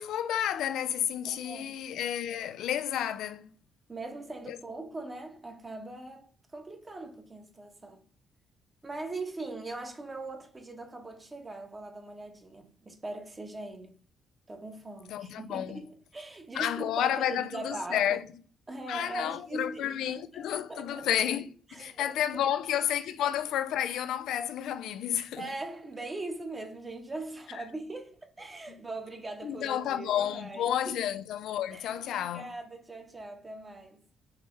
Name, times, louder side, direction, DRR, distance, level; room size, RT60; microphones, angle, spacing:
voice 1, 0.0-3.5 4.5-4.6 15.1-15.8 16.5-18.2 18.9-25.5 27.5-27.6 29.4-32.5, left 10 dB, 80° left, 0.4 m, -31 dB
voice 2, 1.3-1.8 3.9-8.0 8.8-14.0 14.5-18.0 18.7-20.1 20.7-21.1 21.7-22.2 25.4-30.9 31.7-34.0, right 2 dB, 25° right, 1.1 m, -41 dB
5.0 x 3.0 x 3.1 m
cardioid pair, 90°, 0 cm